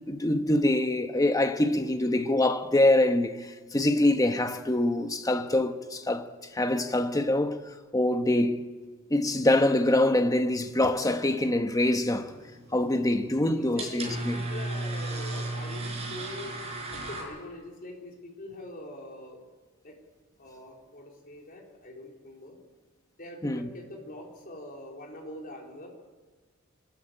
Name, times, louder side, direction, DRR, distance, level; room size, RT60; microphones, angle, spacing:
voice 1, 0.1-6.3 6.5-8.7 9.1-12.3 12.7-14.4 23.4-23.7, left 1 dB, 15° left, 1.1 m, -25 dB
sound 1, 12.0-17.2, right 2 dB, 30° right, 5.8 m, -36 dB
voice 2, 13.6-19.4 19.8-20.0 20.4-22.6 23.2-25.9, left 1 dB, 45° left, 4.2 m, -43 dB
24.5 x 13.5 x 8.9 m
head